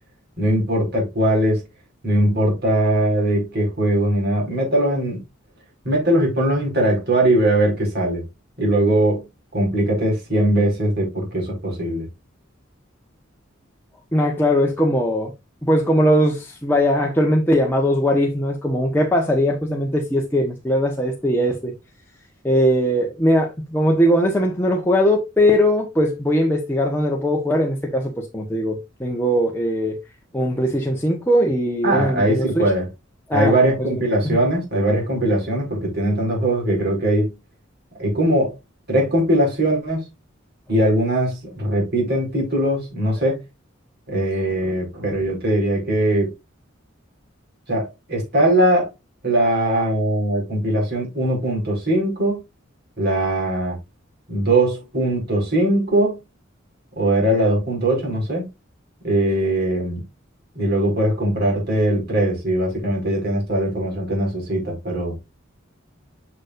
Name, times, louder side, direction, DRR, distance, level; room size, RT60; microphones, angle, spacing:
voice 1, 0.4-1.6 2.0-5.2 5.8-8.2 8.6-9.2 9.5-12.1 31.8-32.9 33.3-37.3 38.0-38.5 38.9-40.0 40.7-43.4 44.1-46.3 47.7-48.9 49.2-52.4 53.0-53.8 54.3-56.2 57.0-58.5 59.0-60.0 60.5-65.1, right 1 dB, 55° right, 4.9 m, -20 dB
voice 2, 14.1-15.3 15.6-21.7 22.4-30.0 30.3-32.6 33.3-33.5 33.9-34.4, equal, 10° left, 1.2 m, -20 dB
7.4 x 6.6 x 2.6 m
head